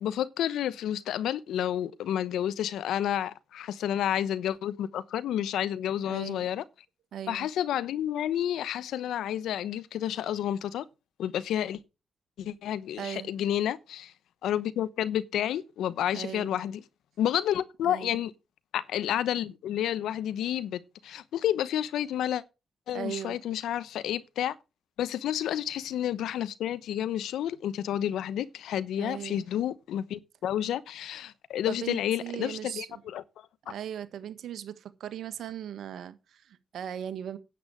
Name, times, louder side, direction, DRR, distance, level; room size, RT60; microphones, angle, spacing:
voice 1, 0.0-6.6 7.3-10.8 11.2-11.8 12.4-14.1 14.4-16.8 17.2-18.3 18.7-22.4 22.9-24.5 25.0-33.2, left 11 dB, 80° left, 0.9 m, -30 dB
voice 2, 6.0-6.4 7.1-7.5 13.0-13.3 16.1-16.6 17.8-18.2 22.9-23.4 29.0-29.5 31.7-33.0 33.6-37.4, right 9 dB, 75° right, 1.5 m, -38 dB
10.0 x 8.3 x 6.3 m
supercardioid pair, 50°, 0 cm